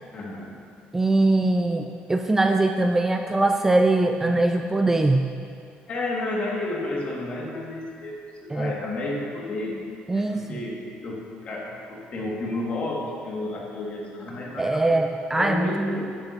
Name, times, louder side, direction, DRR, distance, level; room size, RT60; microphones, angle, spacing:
voice 1, 0.1-0.5 5.9-9.8 10.1-15.0 15.4-16.1, left 2 dB, 40° left, -3 dB, 2.0 m, -31 dB
voice 2, 0.9-5.3 8.5-8.7 10.1-10.5 14.6-15.7, right 2 dB, 10° right, 5 dB, 0.4 m, -21 dB
10.5 x 10.5 x 2.8 m, 2.3 s
cardioid pair, 125°, 3 cm